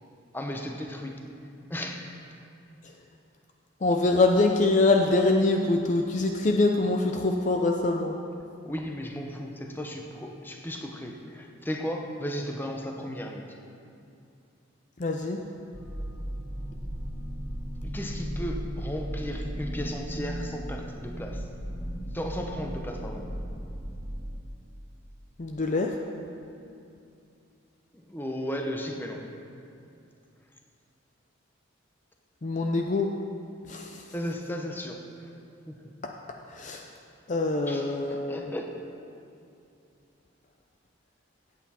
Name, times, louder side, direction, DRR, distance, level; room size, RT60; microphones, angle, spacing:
voice 1, 0.3-1.2 1.7-2.1 8.6-13.6 17.8-21.5 22.1-23.3 27.9-29.2 34.1-35.3 35.7-35.9 37.7-38.8, equal, 10° left, 2 dB, 0.8 m, -35 dB
voice 2, 3.8-8.2 15.0-15.4 25.4-25.9 32.4-33.1 33.7-34.0 36.5-36.9 37.3-38.5, left 2 dB, 35° left, 3 dB, 0.5 m, -24 dB
sound 1, 15.7-24.3, equal, 10° right, 3.1 m, -36 dB
16.0 x 8.3 x 4.3 m, 2.5 s
head